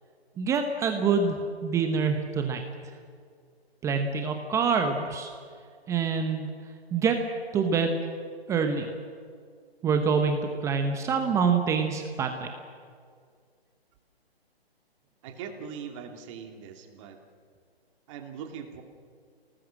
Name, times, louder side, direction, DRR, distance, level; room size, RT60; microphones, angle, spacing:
voice 1, 0.4-1.4 1.6-2.6 3.8-5.3 5.9-6.5 6.9-7.2 7.5-8.0 8.5-8.9 9.8-12.5, right 5 dB, 10° right, 5 dB, 1.0 m, -26 dB
voice 2, 15.2-17.2 18.1-18.8, right 7 dB, 30° right, 4 dB, 2.8 m, -41 dB
28.5 x 19.0 x 7.6 m, 2.1 s
figure-of-eight pair, 145°, 31 cm